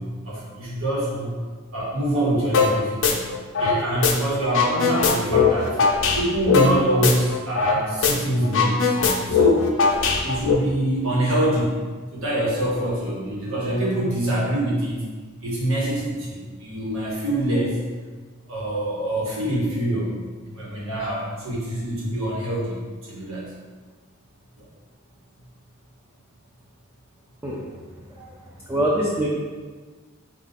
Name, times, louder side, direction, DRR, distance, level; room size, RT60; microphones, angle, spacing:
voice 1, 0.0-1.3 1.7-3.3 3.6-5.8 6.1-9.7 10.2-15.1 15.4-17.8 18.5-20.2 20.5-23.5 24.6-24.7, right 1 dB, 70° right, -5 dB, 1.2 m, -25 dB
sound 1, 2.5-2.7 3.0-4.1 4.4-7.8 8.0-8.1 8.4-10.5, left 6 dB, 65° left, 0.5 m, -20 dB
voice 2, 28.7-29.3, equal, 10° right, -5 dB, 0.4 m, -23 dB
3.9 x 2.4 x 4.1 m, 1.4 s
head